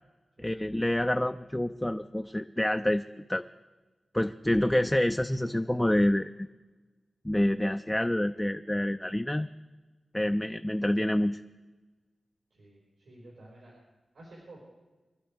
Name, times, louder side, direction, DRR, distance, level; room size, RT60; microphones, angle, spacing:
voice 1, 0.4-3.4 4.1-6.3 7.2-9.5 10.1-11.4, left 1 dB, 10° left, 7 dB, 0.4 m, -27 dB
voice 2, 12.5-13.7 14.1-14.6, right 1 dB, 90° right, -4 dB, 4.8 m, -52 dB
24.5 x 11.5 x 3.5 m, 1.2 s
wide cardioid pair, 70°, 0 cm